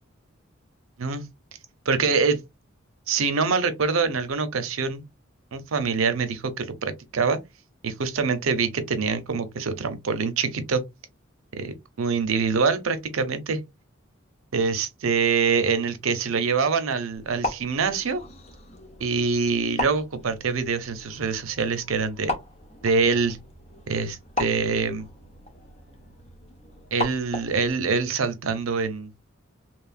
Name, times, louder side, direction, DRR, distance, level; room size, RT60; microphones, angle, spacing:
voice 1, 1.9-2.4 3.1-5.0 5.5-7.4 7.8-10.8 11.5-13.6 14.5-18.2 19.0-22.4 22.8-23.4 23.9-25.1 26.9-29.1, right 5 dB, 85° right, 0.6 m, -25 dB
sound 1, 17.1-27.7, left 1 dB, 30° left, 0.6 m, -36 dB
3.0 x 2.4 x 2.4 m
head